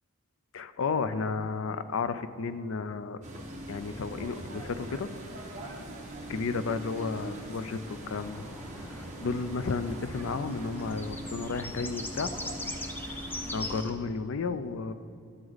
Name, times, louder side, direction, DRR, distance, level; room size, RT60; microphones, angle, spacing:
voice 1, 0.5-3.2 3.7-5.1 6.3-8.4 8.8-12.3 13.1-13.2 13.5-14.9, left 4 dB, 70° left, 12 dB, 0.5 m, -33 dB
sound 1, 3.2-13.8, right 1 dB, 35° right, 1.4 m, -41 dB
sound 2, 8.1-13.9, left 2 dB, 10° left, 0.5 m, -41 dB
12.0 x 7.8 x 4.0 m, 2.6 s
head